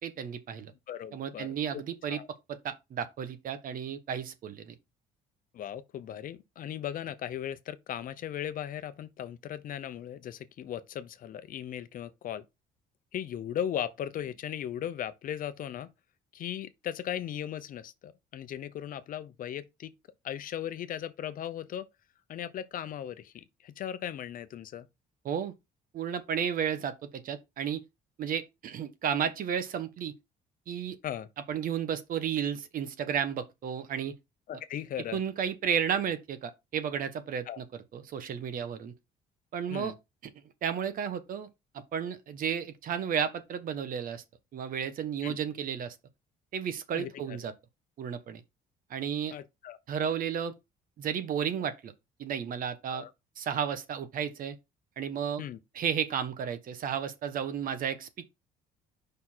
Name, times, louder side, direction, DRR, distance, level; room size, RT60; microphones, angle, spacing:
voice 1, 0.0-0.7 1.1-2.2 2.5-4.7 25.2-25.5 25.9-27.8 28.2-30.1 30.7-31.0 31.5-34.2 35.1-37.6 37.9-38.9 39.5-39.9 40.6-41.5 41.7-44.2 44.5-45.9 46.5-47.5 48.0-48.4 48.9-49.4 49.9-50.5 51.0-51.9 52.2-53.0 53.4-54.6 55.0-55.4 55.7-58.3, right 8 dB, 55° right, 1.1 m, -33 dB
voice 2, 0.9-1.5 1.7-1.8 2.1-2.3 5.5-12.4 13.1-15.9 16.3-19.9 20.2-21.8 22.3-24.9 31.0-31.3 34.5-35.2 37.5-37.6 39.7-39.9 45.2-45.4 46.9-47.4 49.3-49.8 52.9-53.1 55.4-55.6, left 10 dB, 55° left, 0.7 m, -37 dB
5.4 x 4.2 x 4.4 m
cardioid pair, 110°, 17 cm